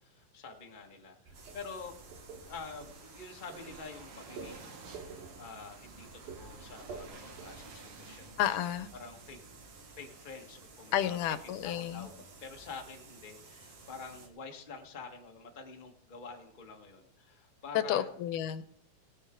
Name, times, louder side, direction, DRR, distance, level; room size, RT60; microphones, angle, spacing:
voice 1, 0.0-1.9 2.4-8.5 8.9-9.4 10.0-12.1 12.4-18.1, left 4 dB, 25° left, 1 dB, 1.1 m, -47 dB
sound 1, 1.3-14.3, right 3 dB, 55° right, 2.4 m, -52 dB
sound 2, 1.3-7.5, right 4 dB, 75° right, 3.5 m, -49 dB
voice 2, 8.4-8.9 10.9-12.1 17.7-18.6, left 11 dB, 85° left, 12 dB, 2.2 m, -31 dB
17.5 x 9.9 x 3.8 m, 0.66 s
omnidirectional pair, 3.6 m